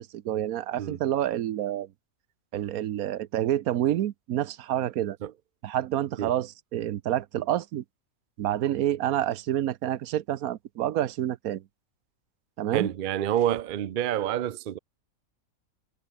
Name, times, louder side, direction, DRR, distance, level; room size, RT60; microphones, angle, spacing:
voice 1, 0.0-1.9 2.5-5.2 5.6-7.8 8.4-11.6 12.6-12.9, right 12 dB, 85° right, 1.2 m, -28 dB
voice 2, 12.7-14.8, right 11 dB, 55° right, 0.6 m, -28 dB
omnidirectional pair, 1.5 m